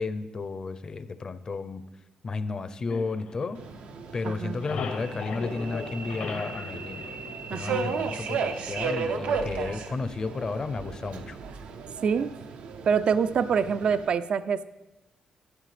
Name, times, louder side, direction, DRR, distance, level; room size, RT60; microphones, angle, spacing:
voice 1, 0.0-1.8 2.2-3.6 4.1-7.1 7.5-11.4, left 3 dB, 35° left, 12 dB, 0.5 m, -33 dB
sound 1, 2.9-4.0 4.3-8.0, left 5 dB, 80° left, 1.0 m, -38 dB
Subway metro underground, 3.5-14.1, right 5 dB, 85° right, 0.7 m, -35 dB
voice 2, 4.2-4.6 7.5-8.0 12.0-12.4 12.8-14.7, right 6 dB, 55° right, 14 dB, 0.3 m, -26 dB
13.0 x 9.9 x 3.3 m, 1.0 s
cardioid pair, 135°, 2 cm